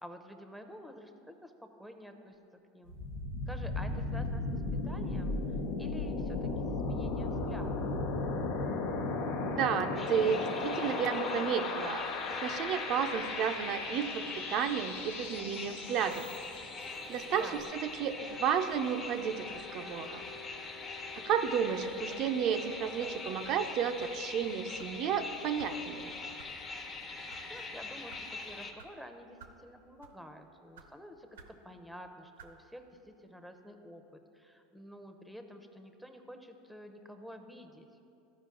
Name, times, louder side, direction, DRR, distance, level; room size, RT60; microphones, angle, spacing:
voice 1, 0.0-3.0 3.5-5.4 5.8-7.8 17.4-17.8 27.5-37.9, equal, ahead, 6 dB, 0.7 m, -50 dB
sound 1, 2.9-16.7, left 3 dB, 75° left, 0.9 m, -36 dB
voice 2, 9.5-12.1 12.4-16.3 17.1-20.2 21.3-26.1, right 7 dB, 50° right, 6 dB, 0.5 m, -32 dB
sound 2, 10.0-28.7, left 3 dB, 30° left, 1.0 m, -43 dB
sound 3, 22.1-22.3 23.0-23.3 24.0-24.2 24.8-25.0 25.6-25.7 26.4-26.5 27.1-27.4 28.1-28.2 28.8-28.9 29.4-29.6 30.0-30.2 30.7-30.9 31.3-31.6 32.4-32.6, right 5 dB, 85° right, 0.8 m, -54 dB
14.0 x 5.0 x 3.8 m, 2.8 s
supercardioid pair, 105°, 0 cm